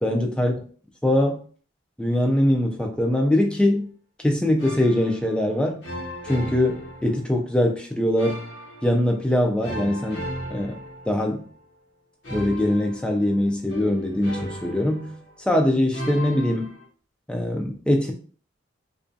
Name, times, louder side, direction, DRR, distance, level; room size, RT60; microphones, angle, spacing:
voice 1, 0.0-0.5 1.0-1.4 2.0-3.9 4.2-5.8 6.3-8.4 8.8-10.2 10.5-10.8 11.1-11.4 12.3-15.2 15.5-16.7 17.3-18.1, left 1 dB, 5° left, 2 dB, 0.3 m, -22 dB
sound 1, 4.6-5.5 5.8-7.5 8.2-9.2 9.6-11.5 12.2-15.5 15.9-16.8, equal, 65° left, 1.0 m, -36 dB
2.4 x 2.2 x 2.5 m, 0.43 s
head